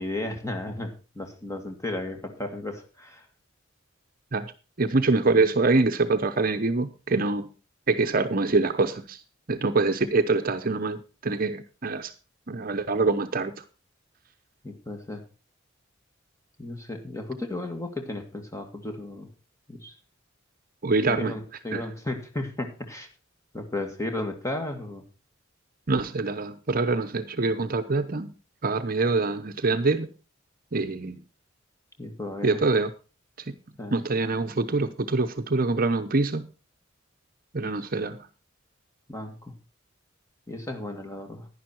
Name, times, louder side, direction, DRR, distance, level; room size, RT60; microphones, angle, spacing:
voice 1, 0.0-3.3 14.6-15.2 16.6-19.3 19.7-20.0 21.1-23.1 23.5-25.0 32.0-32.6 33.8-34.0 39.1-39.4 40.5-41.5, left 2 dB, 15° left, 5 dB, 2.1 m, -34 dB
voice 2, 4.8-7.5 7.9-9.2 9.5-12.1 12.5-13.5 20.8-21.3 21.7-21.8 25.9-28.3 28.6-30.1 30.7-31.2 32.4-32.9 33.9-36.5 37.5-38.2, right 3 dB, 45° right, 9 dB, 0.8 m, -25 dB
11.0 x 10.5 x 4.5 m, 0.32 s
head